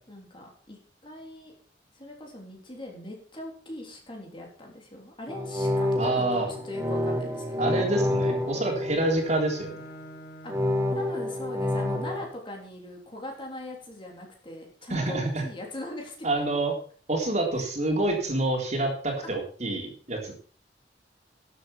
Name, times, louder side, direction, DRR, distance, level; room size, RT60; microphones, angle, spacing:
voice 1, 0.1-1.5 1.9-7.7 10.4-10.5 10.9-16.5 17.6-17.7 19.2-19.3, left 1 dB, 30° left, 0 dB, 3.5 m, -41 dB
sound 1, 5.3-9.6 10.5-12.2, left 1 dB, 15° right, 1.8 m, -28 dB
voice 2, 6.0-6.5 7.6-9.8 14.9-15.4 16.2-16.7 17.1-20.3, right 2 dB, 40° right, 1 dB, 3.6 m, -27 dB
Bowed string instrument, 6.1-10.9, right 1 dB, 60° left, 2.8 m, -47 dB
12.5 x 8.3 x 5.8 m, 0.43 s
head